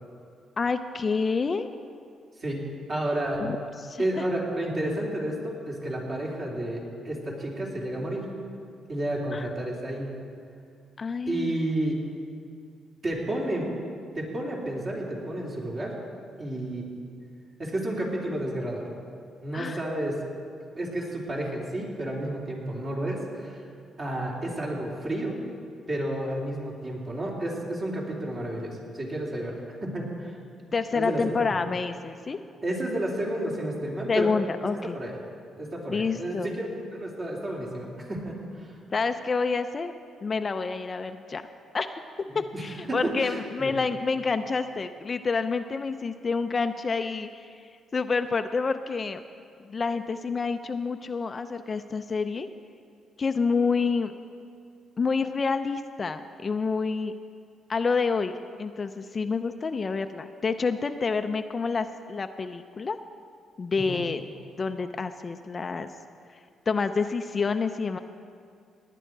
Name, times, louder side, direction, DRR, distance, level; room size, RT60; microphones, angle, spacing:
voice 1, 0.6-1.8 3.4-4.0 9.3-9.5 11.0-11.6 19.5-19.8 30.7-32.4 34.1-35.0 35.9-36.5 38.9-39.9 40.2-41.4 41.7-42.0 42.3-47.5 47.9-49.2 49.6-52.5 53.2-54.1 55.0-57.1 57.7-63.0 63.6-64.2 64.6-65.9 66.7-68.0, left 4 dB, 35° left, 8 dB, 0.5 m, -28 dB
voice 2, 2.4-3.5 4.0-8.3 8.9-10.2 11.3-12.0 13.0-13.7 14.1-15.9 16.4-16.8 17.6-18.8 19.4-20.2 20.7-23.6 24.0-25.3 25.9-30.3 30.9-31.6 32.6-34.3 34.8-35.1 35.6-38.7 42.3-42.6 42.9-43.8 63.7-64.1, right 1 dB, 40° right, -3 dB, 3.3 m, -31 dB
18.0 x 10.0 x 4.6 m, 2.3 s
cardioid pair, 90°, 0 cm